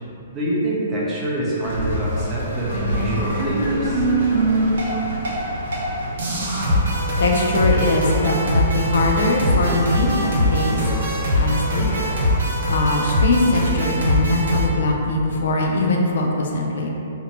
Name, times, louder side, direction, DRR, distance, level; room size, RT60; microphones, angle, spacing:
voice 1, 0.3-4.0, right 1 dB, 15° right, -8 dB, 0.5 m, -25 dB
sound 1, 1.6-12.4, equal, 85° left, 1.2 m, -31 dB
sound 2, 2.7-5.4 5.7-5.9 6.2-14.7, equal, 80° right, 0.6 m, -22 dB
voice 2, 7.2-10.8 11.3-11.9 12.7-16.9, left 2 dB, 65° left, 0 dB, 0.3 m, -21 dB
2.6 x 2.0 x 2.7 m, 2.8 s
hypercardioid pair, 165°, 0 cm